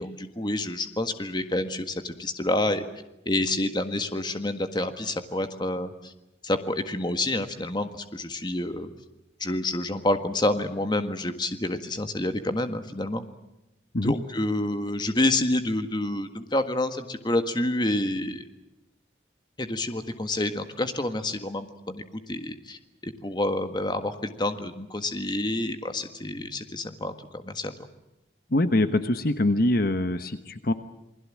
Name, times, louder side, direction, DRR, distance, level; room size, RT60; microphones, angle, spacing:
voice 1, 0.0-2.9 3.2-6.1 6.4-8.9 9.4-13.2 14.0-18.5 19.6-27.7, left 1 dB, 25° left, 8 dB, 1.6 m, -28 dB
voice 2, 28.5-30.7, left 1 dB, 55° left, 10 dB, 1.2 m, -24 dB
28.0 x 21.0 x 7.5 m, 0.92 s
head